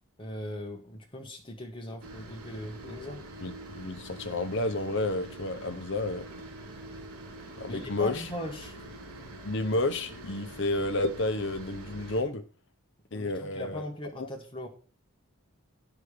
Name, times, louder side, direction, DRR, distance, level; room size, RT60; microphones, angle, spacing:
voice 1, 0.2-3.2 7.7-8.8 13.1-14.7, left 1 dB, 25° left, 2 dB, 1.3 m, -39 dB
sound 1, 2.0-12.2, right 1 dB, 90° right, 3.0 m, -45 dB
voice 2, 3.4-6.3 7.6-8.3 9.4-12.4 13.1-13.8 14.2-14.3, left 2 dB, 55° left, 10 dB, 0.9 m, -31 dB
9.5 x 4.9 x 6.7 m, 0.40 s
head